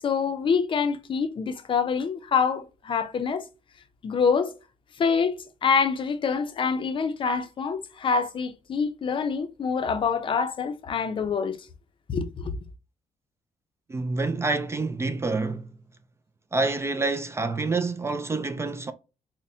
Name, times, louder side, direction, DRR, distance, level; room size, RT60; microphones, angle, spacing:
voice 1, 0.0-3.5 4.0-4.5 5.0-11.6 12.1-12.6, left 5 dB, 45° left, 0.5 m, -26 dB
voice 2, 13.9-15.7 16.5-18.9, right 3 dB, 20° right, 0.3 m, -27 dB
5.3 x 2.1 x 2.6 m
cardioid pair, 125°, 12 cm